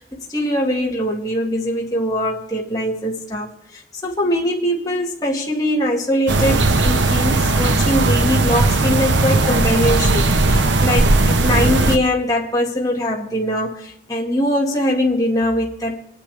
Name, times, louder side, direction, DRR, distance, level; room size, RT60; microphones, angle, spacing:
voice 1, 0.0-16.0, left 1 dB, 20° left, 2.0 m, -22 dB
sound 1, 6.3-12.0, right 2 dB, 85° right, 1.1 m, -17 dB
28.5 x 10.0 x 3.4 m
head